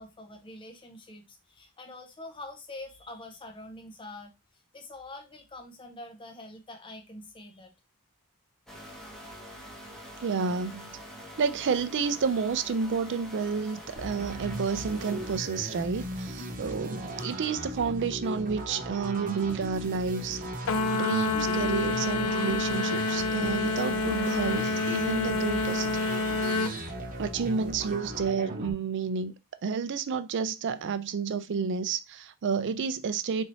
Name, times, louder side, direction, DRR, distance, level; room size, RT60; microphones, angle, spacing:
voice 1, 0.0-7.7, left 2 dB, 25° left, 0.6 m, -45 dB
sound 1, 8.7-15.4, equal, ahead, 0.8 m, -45 dB
voice 2, 10.2-10.9 11.4-20.4 20.9-25.9 27.2-29.3 29.6-33.4, right 5 dB, 55° right, 0.4 m, -30 dB
sound 2, 14.0-28.7, right 1 dB, 40° right, 0.9 m, -37 dB
sound 3, 20.7-26.8, left 2 dB, 70° left, 0.4 m, -28 dB
4.1 x 2.7 x 3.1 m
head